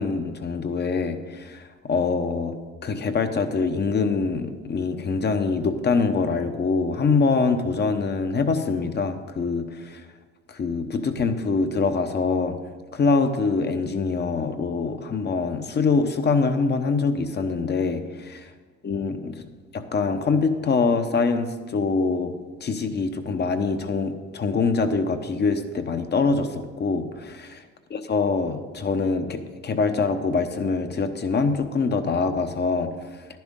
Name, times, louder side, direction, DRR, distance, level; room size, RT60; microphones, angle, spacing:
voice 1, 0.0-2.5 2.8-10.0 10.5-12.6 12.9-18.5 18.8-19.4 19.7-22.3 22.6-27.5 27.9-32.9, left 4 dB, 35° left, 8 dB, 0.9 m, -24 dB
11.0 x 10.5 x 3.7 m, 1.4 s
supercardioid pair, 90°, 31 cm